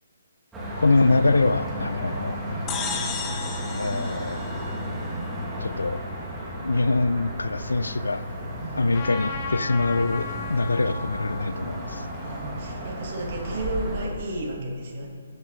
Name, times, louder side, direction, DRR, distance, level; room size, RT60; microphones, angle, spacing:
sound 1, 0.5-14.1, equal, 10° right, 1.4 m, -33 dB
voice 1, 0.8-2.4 3.7-4.4 5.6-6.0 6.6-8.4 8.8-12.1, left 3 dB, 75° left, 14 dB, 0.3 m, -24 dB
voice 2, 2.0-2.3 8.6-9.0 12.2-15.1, right 2 dB, 40° right, -1 dB, 1.6 m, -33 dB
sound 2, 2.7-5.3, left 5 dB, 15° left, 0.6 m, -34 dB
Trumpet, 8.9-13.6, left 4 dB, 35° left, 1.0 m, -37 dB
14.0 x 8.0 x 2.6 m, 2.2 s
figure-of-eight pair, 135°, 0 cm